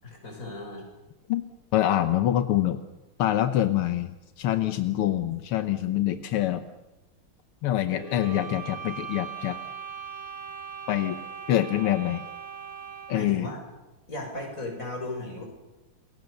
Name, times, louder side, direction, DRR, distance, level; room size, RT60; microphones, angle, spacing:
voice 1, 0.0-0.8 7.9-8.5 13.1-13.6 14.1-15.4, left 2 dB, 35° left, 1 dB, 7.2 m, -36 dB
voice 2, 1.7-2.8 3.2-6.6 7.6-9.6 10.9-11.2 11.5-12.2 13.1-13.5, left 12 dB, 85° left, 9 dB, 1.9 m, -25 dB
sound 1, 8.0-13.3, right 7 dB, 15° right, 5.7 m, -40 dB
28.5 x 22.0 x 6.8 m, 1.1 s
omnidirectional pair, 2.4 m